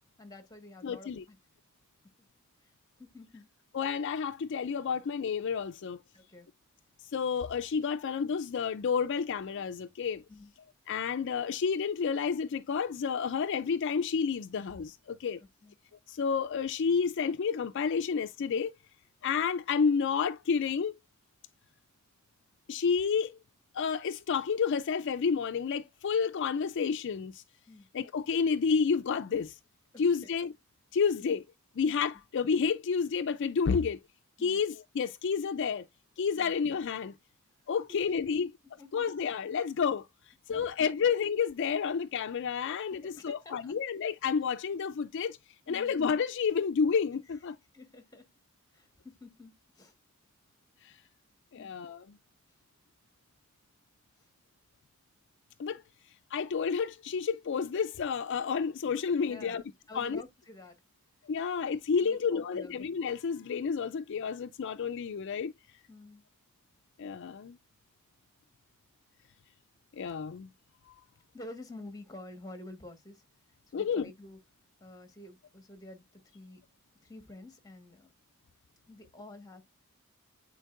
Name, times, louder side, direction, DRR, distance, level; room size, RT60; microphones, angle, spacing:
voice 1, 0.2-1.4 2.6-2.7 3.0-3.4 6.1-6.5 10.3-10.5 15.4-15.7 27.7-27.9 29.9-30.1 31.2-31.3 34.4-34.6 36.4-36.5 38.8-39.1 40.5-40.7 43.0-43.7 45.7-45.9 47.7-48.3 48.7-49.9 51.6-51.7 59.3-59.6 59.9-60.8 62.0-62.8 65.9-66.2 71.3-73.2 73.7-74.4 74.8-76.6 77.0-78.1 78.9-79.6, left 2 dB, 15° left, 1.4 m, -49 dB
voice 2, 0.8-1.2 3.7-6.0 7.1-10.2 10.9-15.4 16.1-18.7 19.2-20.9 22.7-23.4 23.7-27.4 27.9-29.6 30.0-30.5 30.9-31.4 31.8-34.0 34.4-35.9 36.2-37.1 37.7-38.5 38.9-45.4 45.7-47.6 50.8-51.0 51.5-52.2 55.6-55.8 56.3-59.6 59.9-60.2 61.2-65.5 67.0-67.6 69.9-70.5 70.9-71.0 73.7-74.1, left 6 dB, 55° left, 0.4 m, -30 dB
9.1 x 4.4 x 2.4 m
head